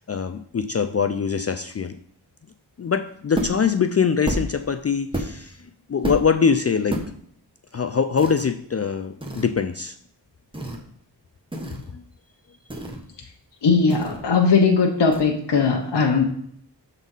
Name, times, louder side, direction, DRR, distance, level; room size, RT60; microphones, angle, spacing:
voice 1, 0.0-2.0 2.8-7.0 7.7-10.0 11.9-12.0, left 6 dB, 35° left, 8 dB, 0.4 m, -23 dB
sound 1, 3.3-3.7 4.2-4.6 5.1-5.5 6.0-6.3 6.9-7.1 8.2-8.5 9.2-9.5 10.5-10.8 11.5-11.9 12.7-13.1 13.9-14.3 15.1-15.2, right 1 dB, 10° right, 1.3 m, -29 dB
voice 2, 13.6-16.2, left 5 dB, 70° left, 1 dB, 1.0 m, -19 dB
7.1 x 4.1 x 5.4 m, 0.65 s
wide cardioid pair, 65°, 43 cm